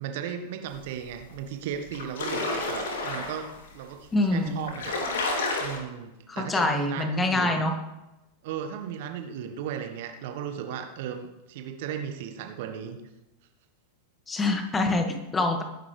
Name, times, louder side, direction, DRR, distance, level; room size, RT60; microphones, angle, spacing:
voice 1, 0.0-7.6 8.4-13.0, right 8 dB, 50° right, 6 dB, 1.5 m, -36 dB
sound 1, 1.3-1.4 1.7-3.5 4.2-4.3 4.6-5.8, left 2 dB, 60° left, 3.1 m, -30 dB
voice 2, 4.1-4.6 6.3-7.7 14.3-15.6, left 2 dB, 15° left, 4 dB, 2.0 m, -25 dB
21.0 x 10.5 x 3.4 m, 0.97 s
figure-of-eight pair, 90°, 0 cm